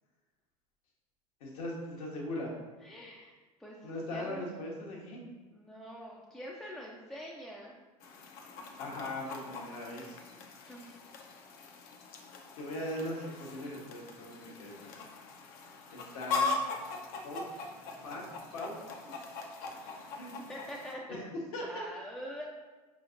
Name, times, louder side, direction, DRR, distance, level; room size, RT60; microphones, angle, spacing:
voice 1, 1.4-2.5 3.8-5.2 8.8-10.2 12.5-14.9 15.9-17.0 17.2-17.5 18.0-18.8 19.0-19.3 20.1-20.4 21.5-21.8, left 1 dB, 65° left, -3 dB, 1.1 m, -40 dB
voice 2, 2.8-4.5 5.5-7.7 10.7-11.1 20.5-21.3 21.6-22.4, equal, 5° left, -4 dB, 0.5 m, -45 dB
Chicken rooster, 8.0-20.9, left 3 dB, 50° left, 0.6 m, -40 dB
4.8 x 3.1 x 2.5 m, 1.2 s
hypercardioid pair, 80°, 20 cm